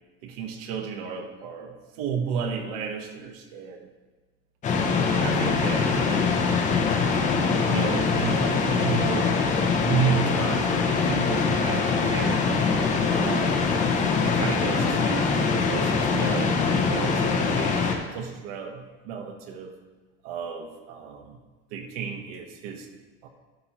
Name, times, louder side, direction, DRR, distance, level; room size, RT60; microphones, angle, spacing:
voice 1, 0.2-3.9 5.1-6.3 7.7-12.5 13.1-13.7 14.2-19.7 20.2-21.4 21.7-22.9 23.2-23.3, right 6 dB, 80° right, 4 dB, 1.2 m, -33 dB
sound 1, 4.6-18.0, left 4 dB, 20° left, 0.6 m, -23 dB
12.0 x 5.5 x 3.0 m, 1.3 s
cardioid pair, 175°, 33 cm